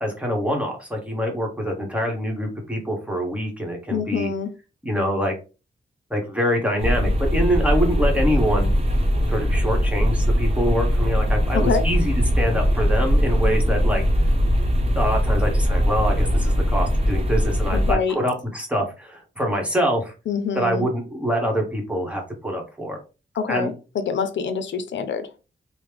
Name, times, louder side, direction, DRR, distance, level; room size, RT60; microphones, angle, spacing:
voice 1, 0.0-4.3 4.8-5.3 6.1-8.8 9.3-14.0 14.9-20.1 20.5-23.0 23.5-23.7, equal, 5° right, 1 dB, 1.1 m, -25 dB
voice 2, 3.9-4.5 11.5-11.8 17.7-18.2 20.3-20.9 23.4-25.3, left 6 dB, 80° left, 9 dB, 0.5 m, -25 dB
sound 1, 6.8-17.9, equal, 35° right, 0.9 m, -20 dB
3.1 x 2.1 x 3.4 m, 0.31 s
wide cardioid pair, 95°, 19 cm